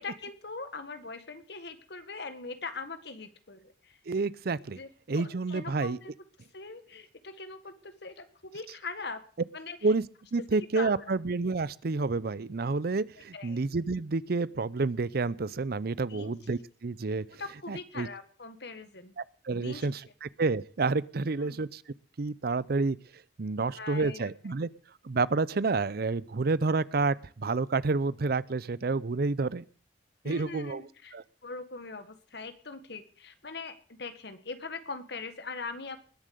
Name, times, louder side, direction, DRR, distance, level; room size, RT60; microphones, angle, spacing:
voice 1, 0.0-4.0 4.8-4.9 5.2-6.1 6.5-9.2 9.5-9.9 10.6-11.1 13.3-13.6 16.1-16.3 17.4-19.1 19.5-19.9 21.4-21.6 23.6-24.3 30.2-31.2 31.4-36.0, left 4 dB, 65° left, 10 dB, 1.7 m, -41 dB
voice 2, 4.1-4.8 5.1-6.0 9.8-10.0 10.3-17.3 17.7-18.1 19.2-21.8 22.2-23.0 23.4-24.7 25.0-29.6 30.2-30.8 31.1-31.2, right 3 dB, 60° right, 20 dB, 0.6 m, -29 dB
20.5 x 7.5 x 6.8 m, 0.42 s
head